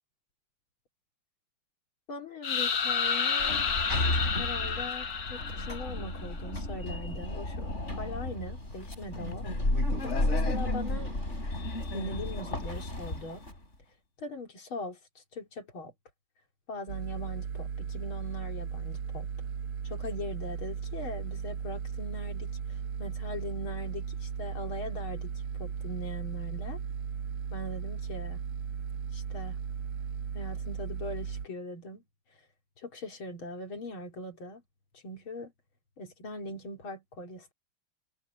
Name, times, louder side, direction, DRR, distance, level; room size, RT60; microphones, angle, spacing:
voice 1, 2.1-3.7 4.4-9.5 10.0-11.2 11.9-13.4 14.2-15.9 16.7-19.3 19.8-25.3 25.6-26.8 27.5-28.4 29.1-29.6 30.3-32.0 32.8-34.6 34.9-35.5 36.0-37.5, left 1 dB, 70° left, 3.9 m, -41 dB
sound 1, 2.4-6.3, left 5 dB, 45° left, 1.8 m, -30 dB
Sliding door, 3.4-13.5, left 1 dB, 30° left, 7.2 m, -33 dB
sound 2, 16.9-31.5, right 7 dB, 90° right, 2.2 m, -36 dB
omnidirectional pair, 2.3 m